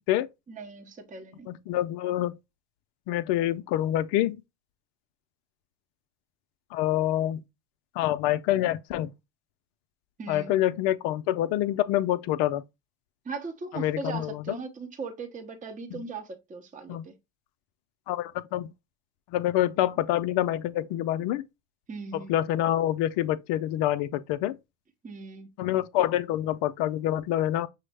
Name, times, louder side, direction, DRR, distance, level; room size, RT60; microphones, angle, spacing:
voice 1, 0.5-1.5 10.2-10.5 13.2-17.1 21.9-22.4 25.0-25.5, right 4 dB, 15° right, 0.7 m, -38 dB
voice 2, 1.5-2.3 3.1-4.4 6.7-7.4 8.0-9.1 10.3-12.6 13.7-14.4 15.9-16.0 16.9-17.0 18.1-18.7 19.3-21.4 22.3-24.5 25.6-27.7, left 13 dB, 60° left, 0.5 m, -26 dB
6.1 x 2.1 x 3.2 m
hypercardioid pair, 85°, 49 cm